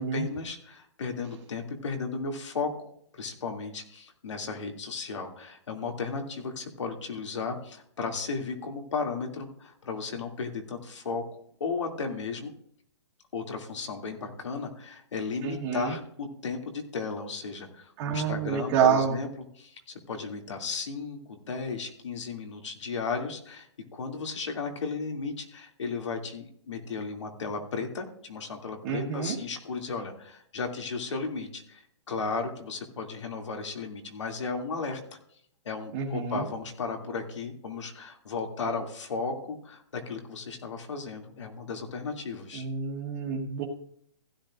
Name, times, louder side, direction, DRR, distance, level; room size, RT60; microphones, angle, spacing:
voice 1, 0.0-12.5 13.3-19.3 19.6-19.8 20.1-23.7 23.9-35.0 35.6-42.7, left 4 dB, 85° left, 2 dB, 2.6 m, -35 dB
voice 2, 15.4-15.9 18.0-19.2 28.8-29.4 35.9-36.4 42.5-43.6, right 7 dB, 25° right, -3 dB, 1.4 m, -28 dB
15.5 x 11.0 x 2.5 m, 0.66 s
hypercardioid pair, 170°, 15 cm